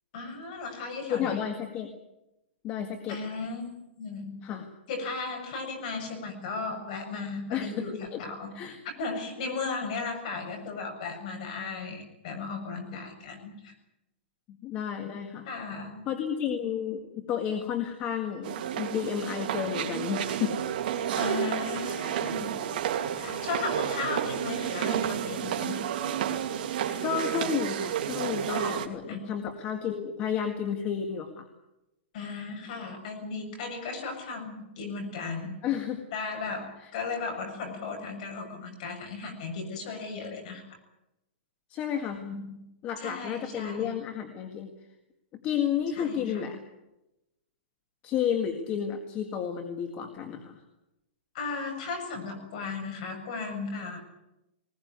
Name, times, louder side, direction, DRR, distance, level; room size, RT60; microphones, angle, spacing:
voice 1, 0.1-1.4 3.1-4.4 4.9-13.7 15.4-16.1 21.2-22.6 23.0-25.9 29.1-29.3 32.1-35.6 36.1-40.6 42.2-42.6 43.0-44.0 45.9-46.5 51.3-54.0, left 4 dB, 40° left, 4 dB, 7.2 m, -36 dB
voice 2, 1.1-1.9 2.6-3.2 4.4-4.7 7.5-8.2 8.5-8.8 14.5-15.5 16.1-20.6 27.0-31.5 35.6-36.0 36.8-36.9 41.7-42.2 42.8-44.7 45.4-46.6 48.0-50.6, left 8 dB, 20° left, 5 dB, 1.8 m, -31 dB
sound 1, 18.4-28.9, right 9 dB, 45° right, 2.8 m, -31 dB
20.5 x 20.5 x 9.6 m, 0.92 s
hypercardioid pair, 170°, 6 cm